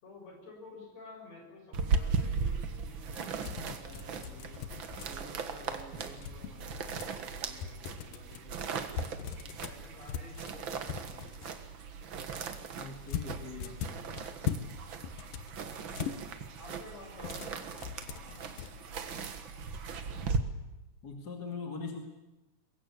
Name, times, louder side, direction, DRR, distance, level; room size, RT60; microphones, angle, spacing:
voice 1, 0.0-4.6 5.0-9.2 9.7-11.6 16.6-19.7, left 2 dB, 50° left, 2 dB, 7.4 m, -52 dB
sound 1, 1.7-20.4, right 5 dB, 50° right, 1.7 m, -38 dB
sound 2, 3.1-5.4 6.2-7.2 7.6-8.4 8.9-11.6 13.1-14.7 15.0-16.2 17.2-18.7, left 9 dB, 85° left, 2.9 m, -40 dB
voice 2, 12.8-14.0 21.0-22.0, left 4 dB, 30° left, 3 dB, 2.6 m, -41 dB
23.5 x 21.5 x 8.6 m, 1.0 s
omnidirectional pair, 3.8 m